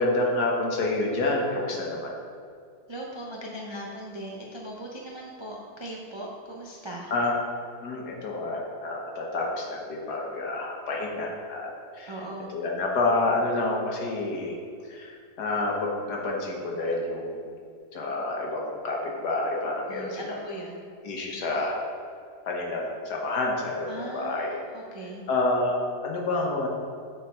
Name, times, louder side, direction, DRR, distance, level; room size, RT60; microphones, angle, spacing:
voice 1, 0.0-2.1 7.1-7.3 7.8-12.1 12.5-14.6 14.9-17.5 17.9-20.4 21.0-21.8 22.5-24.6 25.3-26.7, left 2 dB, 75° left, -1 dB, 1.6 m, -28 dB
voice 2, 2.9-7.1 12.1-12.5 19.9-20.8 23.9-25.2, right 1 dB, 40° right, -3 dB, 0.3 m, -39 dB
7.8 x 4.5 x 4.5 m, 2.3 s
omnidirectional pair, 1.7 m